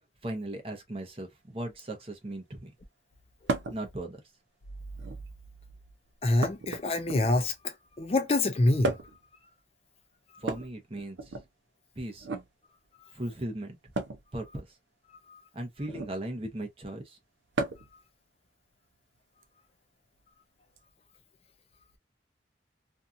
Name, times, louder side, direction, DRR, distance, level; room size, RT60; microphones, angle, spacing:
voice 1, 0.2-2.7 3.7-4.2 10.4-11.4 12.0-12.3 13.1-13.8 14.3-14.8 15.5-17.2, right 1 dB, 30° right, 0.7 m, -37 dB
sound 1, 3.5-3.8 4.9-5.4 6.4-7.5 8.8-9.3 10.4-11.5 12.2-12.5 13.9-14.2 15.8-16.2 17.5-18.0 19.4-19.5 20.8-20.9, right 3 dB, 85° right, 0.5 m, -34 dB
voice 2, 6.2-9.0 15.3-15.4, left 2 dB, 35° left, 0.4 m, -26 dB
2.7 x 2.4 x 2.4 m
head